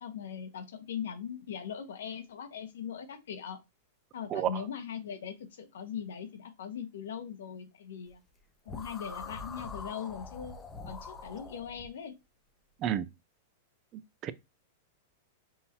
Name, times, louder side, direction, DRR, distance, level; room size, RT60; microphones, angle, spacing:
voice 1, 0.0-3.6 4.1-8.2 8.6-12.1, left 8 dB, 80° left, 1.1 m, -40 dB
sound 1, 8.7-11.9, left 4 dB, 15° left, 0.7 m, -43 dB
voice 2, 13.9-14.3, right 11 dB, 35° right, 0.4 m, -31 dB
5.5 x 2.6 x 2.9 m
hypercardioid pair, 130°, 0 cm